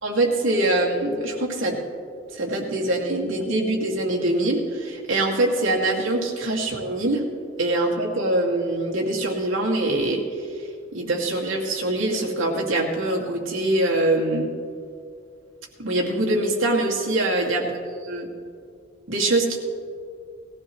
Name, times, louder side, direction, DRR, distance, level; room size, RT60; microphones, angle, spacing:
voice 1, 0.0-1.8 2.3-7.2 7.6-10.2 10.9-14.5 15.8-18.3 19.1-19.6, right 2 dB, 85° right, -2 dB, 2.4 m, -23 dB
20.0 x 15.0 x 3.2 m, 2.3 s
head